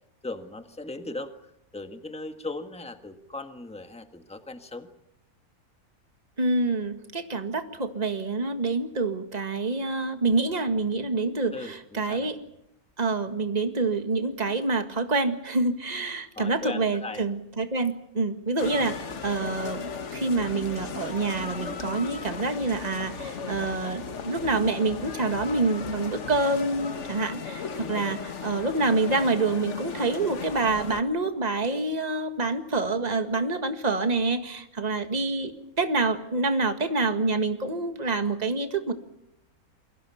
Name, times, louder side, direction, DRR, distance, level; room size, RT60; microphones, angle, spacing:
voice 1, 0.2-4.9 11.5-12.3 16.3-17.2 18.8-18.9 27.9-28.4, left 2 dB, 5° left, 7 dB, 1.5 m, -38 dB
voice 2, 6.4-12.4 13.0-19.0 19.2-38.9, right 3 dB, 25° right, 7 dB, 1.9 m, -27 dB
sound 1, 18.6-31.0, left 5 dB, 50° left, 1.5 m, -36 dB
28.5 x 23.5 x 5.7 m, 0.79 s
omnidirectional pair, 1.6 m